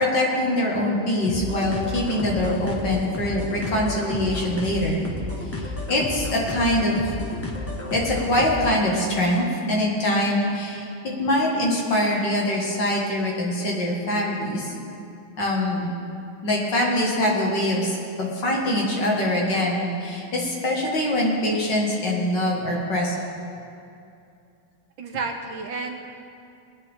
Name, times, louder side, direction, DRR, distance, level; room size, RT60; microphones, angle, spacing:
voice 1, 0.0-5.0 5.5-7.0 7.9-10.9 11.2-14.7 15.4-15.9 16.4-23.3, left 1 dB, 55° left, -2 dB, 2.5 m, -23 dB
sound 1, 1.2-8.9, left 2 dB, 10° left, 1.0 m, -32 dB
voice 2, 25.0-26.1, right 4 dB, 70° right, 4 dB, 1.4 m, -31 dB
20.5 x 10.0 x 3.7 m, 2.6 s
omnidirectional pair, 2.4 m